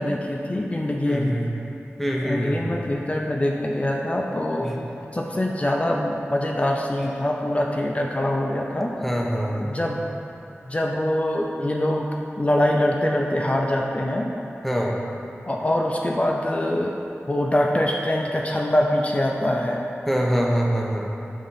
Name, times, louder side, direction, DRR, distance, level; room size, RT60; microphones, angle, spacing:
voice 1, 0.0-1.4 2.2-4.8 5.1-9.0 9.6-10.0 10.7-12.1 12.4-14.3 15.5-17.0 17.3-19.8, left 1 dB, 30° left, 0 dB, 0.5 m, -24 dB
voice 2, 1.0-1.5 2.0-2.6 4.6-4.8 7.0-7.1 9.0-9.7 14.6-14.9 20.1-21.1, equal, 5° left, -2 dB, 0.9 m, -24 dB
7.2 x 3.8 x 5.6 m, 2.9 s
wide cardioid pair, 75°, 5 cm